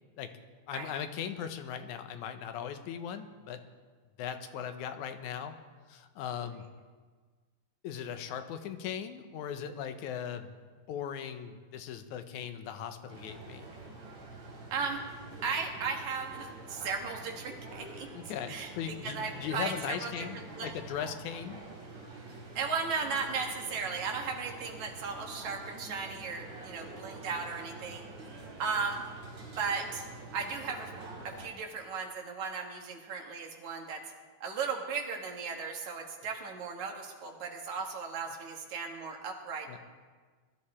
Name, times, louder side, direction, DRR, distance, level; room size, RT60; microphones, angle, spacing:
voice 1, 0.7-3.6 4.2-5.6 5.9-6.7 7.8-10.5 10.9-13.7 18.1-21.6 39.7-39.8, left 8 dB, 85° left, 8 dB, 2.2 m, -38 dB
sound 1, 13.1-31.5, right 3 dB, 40° right, 3.6 m, -47 dB
voice 2, 15.4-18.1 18.5-20.1 20.6-20.7 22.6-28.0 28.6-29.0 29.6-30.0 30.3-30.9 31.2-34.0 34.4-39.8, right 5 dB, 75° right, 2 dB, 2.9 m, -36 dB
20.0 x 13.0 x 4.3 m, 1.5 s
omnidirectional pair, 3.4 m